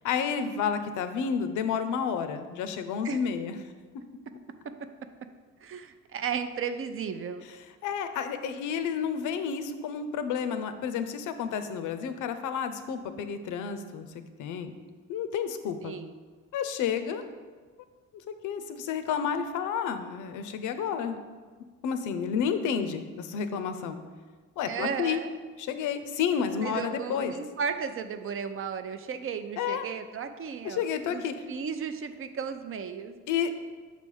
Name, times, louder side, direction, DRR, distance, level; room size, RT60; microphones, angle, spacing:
voice 1, 0.0-3.6 7.8-14.1 14.4-14.7 15.1-16.0 16.5-17.2 18.3-21.2 21.8-24.0 24.6-25.2 25.6-27.3 29.6-29.9 30.6-31.3 33.3-33.5, left 7 dB, 85° left, 9 dB, 0.6 m, -30 dB
voice 2, 5.6-7.5 15.8-16.1 24.7-25.3 26.6-31.2 31.5-33.2, right 6 dB, 45° right, 9 dB, 0.5 m, -34 dB
6.2 x 3.3 x 5.3 m, 1.4 s
cardioid pair, 90°, 30 cm